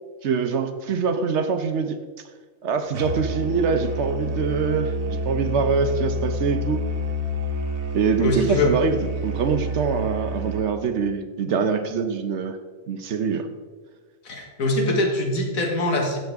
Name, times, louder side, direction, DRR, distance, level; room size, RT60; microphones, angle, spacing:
voice 1, 0.2-2.0 2.6-6.8 7.9-12.6 12.9-13.5, right 5 dB, 65° right, 9 dB, 0.9 m, -24 dB
Musical instrument, 2.9-10.7, equal, 80° right, 1.3 m, -28 dB
voice 2, 8.2-8.7 14.3-16.2, left 2 dB, 85° left, 1 dB, 2.0 m, -23 dB
14.5 x 6.7 x 3.5 m, 1.4 s
omnidirectional pair, 1.4 m